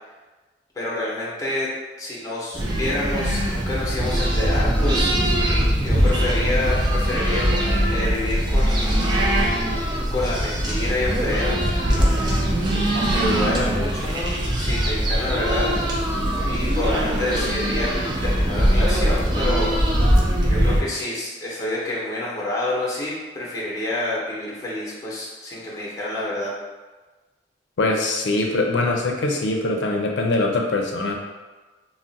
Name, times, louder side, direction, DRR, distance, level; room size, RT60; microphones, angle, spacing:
voice 1, 0.8-1.7 2.0-5.1 5.8-9.1 10.1-11.6 12.0-12.1 12.9-15.7 16.4-17.9 18.2-19.7 20.5-26.5, left 2 dB, 20° left, -6 dB, 0.7 m, -28 dB
sound 1, 2.5-20.8, equal, 25° right, 0.4 m, -21 dB
voice 2, 27.8-31.1, left 2 dB, 80° left, 1 dB, 0.5 m, -22 dB
2.4 x 2.1 x 3.9 m, 1.2 s
head